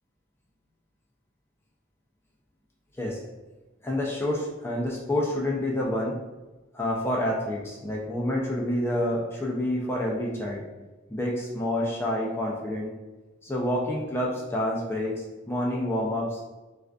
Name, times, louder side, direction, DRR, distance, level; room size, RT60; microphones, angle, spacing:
voice 1, 3.8-6.2 6.7-10.7 11.1-12.9 13.4-16.4, left 1 dB, 10° left, -3 dB, 0.4 m, -28 dB
2.4 x 2.3 x 2.3 m, 1.2 s
head